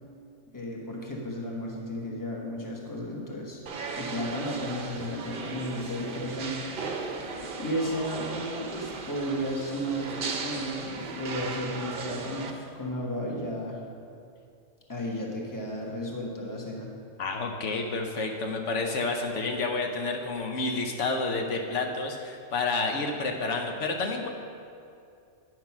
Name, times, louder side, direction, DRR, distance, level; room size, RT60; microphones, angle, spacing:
voice 1, 0.5-3.6 3.9-6.6 7.6-13.8 14.9-16.9, equal, 15° left, -2 dB, 1.2 m, -33 dB
sound 1, 3.7-12.5, right 4 dB, 50° right, 0.8 m, -37 dB
voice 2, 17.2-24.3, left 3 dB, 75° left, 3 dB, 1.1 m, -29 dB
9.4 x 6.0 x 5.8 m, 2.5 s
omnidirectional pair, 1.3 m